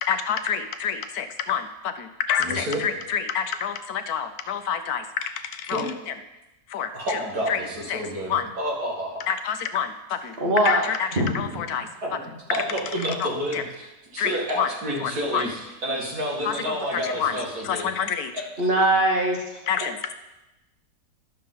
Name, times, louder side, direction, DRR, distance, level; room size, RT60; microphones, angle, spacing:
voice 1, 0.0-6.1 6.7-7.2 7.5-7.6 7.9-8.0 8.3-8.5 9.3-10.3 10.6-11.9 13.2-13.6 14.2-14.7 15.0-15.5 16.4-18.3 19.7-20.1, left 8 dB, 70° left, 9 dB, 1.1 m, -28 dB
voice 2, 2.4-2.8 5.7-5.9 6.9-9.2 12.0-12.1 12.5-15.5 15.8-17.9, equal, 65° right, -3 dB, 2.5 m, -29 dB
voice 3, 10.4-10.9 11.2-11.5 18.6-19.4, right 1 dB, 40° right, 0 dB, 1.6 m, -21 dB
12.0 x 6.6 x 3.9 m, 0.97 s
omnidirectional pair, 1.7 m